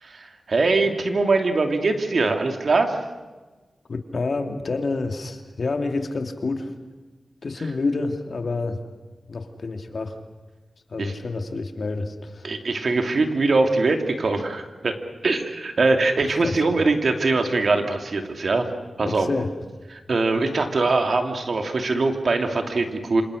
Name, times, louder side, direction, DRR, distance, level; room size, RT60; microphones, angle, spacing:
voice 1, 0.0-3.0 11.0-11.1 12.4-14.9 15.2-18.7 19.0-19.3 19.9-23.2, right 3 dB, 60° right, 4 dB, 2.9 m, -22 dB
voice 2, 3.9-6.7 7.4-8.8 9.3-10.2 10.9-12.5 16.4-16.8 19.0-19.5, left 3 dB, 55° left, 5 dB, 2.5 m, -28 dB
28.0 x 27.0 x 6.5 m, 1.3 s
wide cardioid pair, 90°, 0 cm